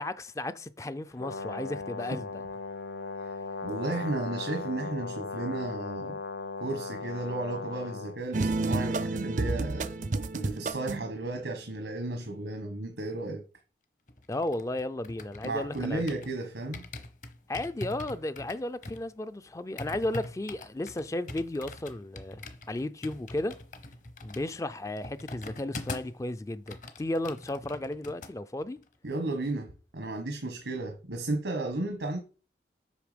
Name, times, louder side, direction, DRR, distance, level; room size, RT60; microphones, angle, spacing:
voice 1, 0.0-2.4 14.3-16.0 17.5-23.6 24.2-28.8, left 1 dB, 20° left, 0.4 m, -34 dB
Brass instrument, 1.2-8.2, left 4 dB, 75° left, 0.5 m, -37 dB
voice 2, 3.6-6.2 6.6-10.0 10.3-13.5 15.4-16.8 29.0-32.2, right 2 dB, 90° right, 1.3 m, -34 dB
sound 1, 8.3-11.1, right 3 dB, 45° right, 0.5 m, -30 dB
sound 2, 14.1-16.4 16.7-26.2 26.5-28.3 28.6-28.9, left 2 dB, 45° left, 1.0 m, -43 dB
8.1 x 5.6 x 5.1 m
head